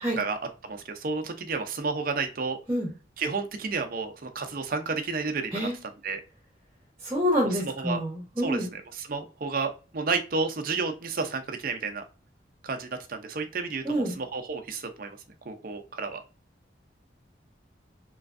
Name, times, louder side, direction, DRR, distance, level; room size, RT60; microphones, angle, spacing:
voice 1, 0.2-2.6 3.2-6.2 7.5-8.0 8.4-12.0 12.6-15.2 15.5-16.2, right 4 dB, 50° right, 6 dB, 0.5 m, -31 dB
voice 2, 7.0-8.7 13.8-14.2, equal, 15° right, -1 dB, 1.0 m, -27 dB
3.3 x 3.0 x 2.5 m, 0.33 s
head